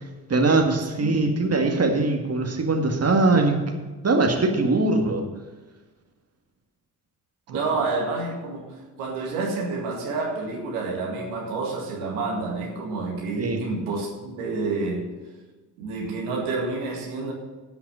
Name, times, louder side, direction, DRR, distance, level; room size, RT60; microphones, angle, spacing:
voice 1, 0.3-3.6 4.0-5.2 13.4-13.6, right 3 dB, 30° right, 2 dB, 1.9 m, -21 dB
voice 2, 7.5-15.1 15.8-17.3, right 3 dB, 75° right, -1 dB, 2.0 m, -29 dB
11.0 x 5.9 x 7.6 m, 1.3 s
hypercardioid pair, 45°, 48 cm